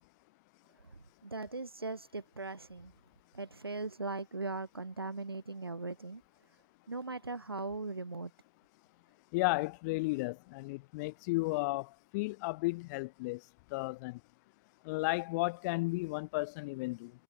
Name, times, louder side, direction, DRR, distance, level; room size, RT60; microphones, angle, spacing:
voice 1, 1.2-2.9 3.3-6.2 6.9-8.3, right 3 dB, 90° right, 0.6 m, -39 dB
voice 2, 9.3-13.4 13.7-14.2 14.8-17.1, left 24 dB, 50° left, 0.6 m, -34 dB
figure-of-eight pair, 85°, 12 cm